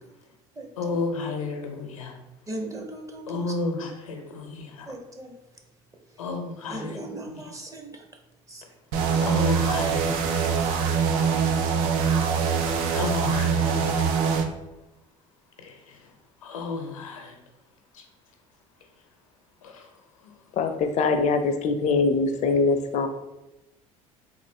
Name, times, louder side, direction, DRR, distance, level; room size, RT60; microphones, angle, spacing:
voice 1, 0.8-2.2 3.3-4.9 6.2-7.0 7.3-7.4 9.2-10.6 12.5-12.6 12.9-14.2 15.6-16.0 16.4-17.4 17.9-18.0 19.6-19.9 20.2-20.3, left 3 dB, 90° left, 4 dB, 0.6 m, -32 dB
voice 2, 2.5-3.4 4.9-5.3 6.7-7.9 8.5-8.6, right 1 dB, 20° right, 2 dB, 0.7 m, -37 dB
sound 1, 8.9-14.4, right 6 dB, 70° right, 0.5 m, -23 dB
voice 3, 20.5-23.1, left 4 dB, 45° left, 7 dB, 0.5 m, -23 dB
3.7 x 2.4 x 3.3 m, 0.98 s
hypercardioid pair, 65°, 17 cm